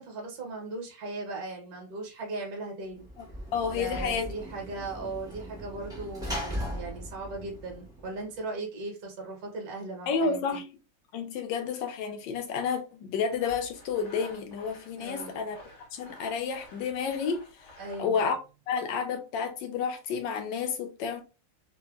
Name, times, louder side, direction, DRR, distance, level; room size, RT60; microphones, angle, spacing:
voice 1, 0.0-3.1 3.8-10.4 15.0-15.4 17.8-18.2, right 2 dB, 60° right, 1.1 m, -38 dB
Sliding door / Slam, 3.0-8.4, equal, 5° right, 0.4 m, -38 dB
voice 2, 3.5-4.3 10.1-10.6 11.1-15.6 15.9-17.4 18.0-18.4 18.7-21.2, left 6 dB, 80° left, 1.3 m, -30 dB
Sawing, 13.3-18.1, left 1 dB, 55° left, 0.9 m, -51 dB
3.2 x 2.1 x 2.2 m
omnidirectional pair, 2.0 m